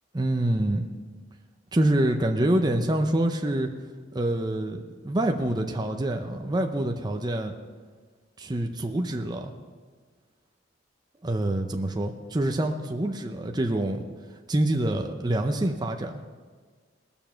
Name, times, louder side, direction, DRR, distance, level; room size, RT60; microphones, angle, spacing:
voice 1, 0.1-0.9 1.7-3.7 4.1-7.5 8.4-9.5 11.2-14.0 14.5-16.2, right 1 dB, 20° right, 3 dB, 0.7 m, -26 dB
19.0 x 7.1 x 5.8 m, 1.5 s
head